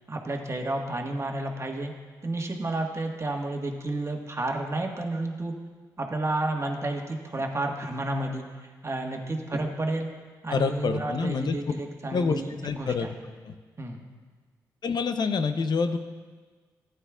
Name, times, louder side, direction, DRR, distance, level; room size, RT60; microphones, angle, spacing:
voice 1, 0.1-1.9 2.2-5.5 6.0-10.1 10.4-13.1 13.8-14.0, right 2 dB, 35° right, 2 dB, 1.5 m, -31 dB
voice 2, 10.5-11.5 12.0-13.1 13.4-13.5 14.8-16.0, left 5 dB, 60° left, 9 dB, 0.7 m, -27 dB
14.5 x 9.3 x 2.4 m, 1.5 s
supercardioid pair, 45°, 8 cm